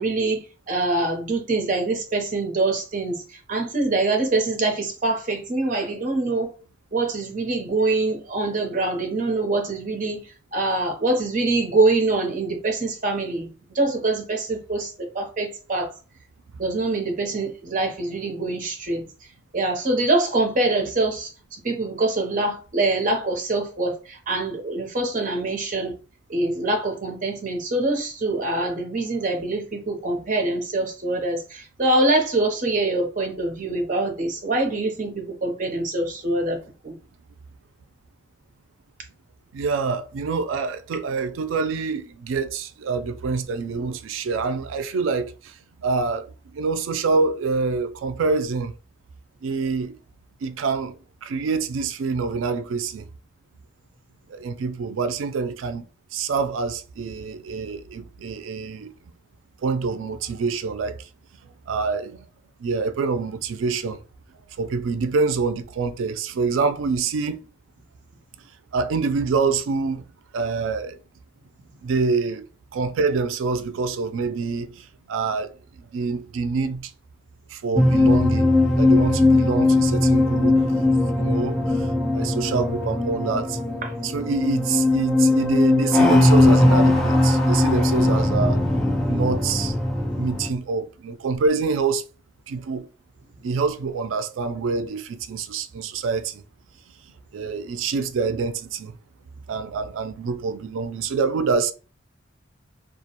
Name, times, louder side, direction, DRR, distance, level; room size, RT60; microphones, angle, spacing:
voice 1, 0.0-6.5 6.9-10.3 10.5-15.9 16.6-19.0 19.5-25.9 26.3-36.6 36.8-36.9 83.8-84.0, right 2 dB, 40° right, 0.6 m, -24 dB
voice 2, 39.5-45.5 45.8-48.7 49.4-50.0 50.4-53.1 54.3-55.8 56.1-58.9 59.6-61.0 61.7-62.3 62.6-64.0 64.6-67.4 68.7-70.0 70.3-71.0 71.8-72.5 72.7-75.5 75.9-76.9 77.5-78.5 78.8-80.8 81.1-81.9 82.1-83.6 84.0-88.6 89.1-89.7 90.2-92.0 92.5-92.9 93.4-96.4 97.3-99.0 99.5-101.7, right 4 dB, 85° right, 0.3 m, -26 dB
sound 1, 77.8-90.5, left 2 dB, ahead, 0.4 m, -19 dB
2.3 x 2.1 x 2.8 m
head